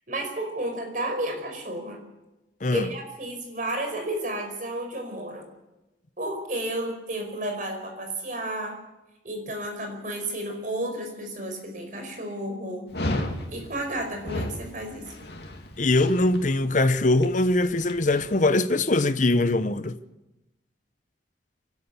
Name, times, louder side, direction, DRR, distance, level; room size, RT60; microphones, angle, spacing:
voice 1, 0.1-2.0 2.7-5.5 6.2-8.8 9.2-12.9 13.5-15.1, right 1 dB, 45° right, 5.0 m, -32 dB
Dog, 12.9-18.3, left 1 dB, 65° left, 2.7 m, -34 dB
voice 2, 15.8-20.0, left 2 dB, 45° left, 0.8 m, -22 dB
25.5 x 12.5 x 8.4 m
head